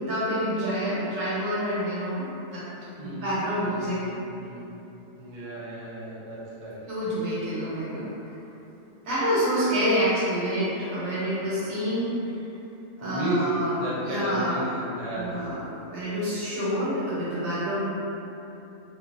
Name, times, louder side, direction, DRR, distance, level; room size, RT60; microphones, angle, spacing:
voice 1, 0.0-2.3 2.5-2.6 3.0-4.0 6.9-8.1 9.0-12.1 13.0-13.8 14.1-14.6 15.1-15.6 15.9-17.8, equal, 75° right, -10 dB, 1.3 m, -27 dB
voice 2, 3.0-4.6 5.2-6.8 9.5-9.8 13.0-15.5, right 1 dB, 55° right, -8 dB, 0.4 m, -33 dB
2.8 x 2.3 x 2.4 m, 2.9 s
omnidirectional pair, 1.4 m